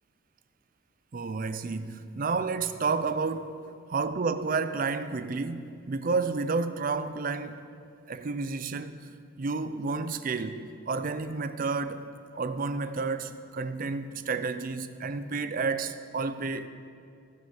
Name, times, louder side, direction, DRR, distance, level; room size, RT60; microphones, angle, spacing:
voice 1, 1.1-3.6 3.9-7.6 8.1-9.0 9.4-12.1 12.3-16.7, right 4 dB, 40° right, 0.4 m, -31 dB
14.5 x 6.6 x 6.3 m
head